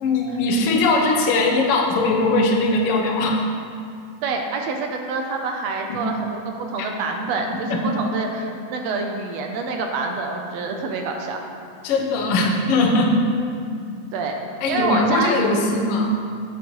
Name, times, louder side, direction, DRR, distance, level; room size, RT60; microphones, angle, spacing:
voice 1, 0.0-3.4 5.9-6.1 7.7-8.0 11.8-13.2 14.6-16.1, left 2 dB, 65° left, 0 dB, 1.5 m, -20 dB
voice 2, 4.2-11.4 14.1-15.3, right 4 dB, 75° right, 3 dB, 1.7 m, -27 dB
9.1 x 8.4 x 3.1 m, 2.4 s
omnidirectional pair, 3.4 m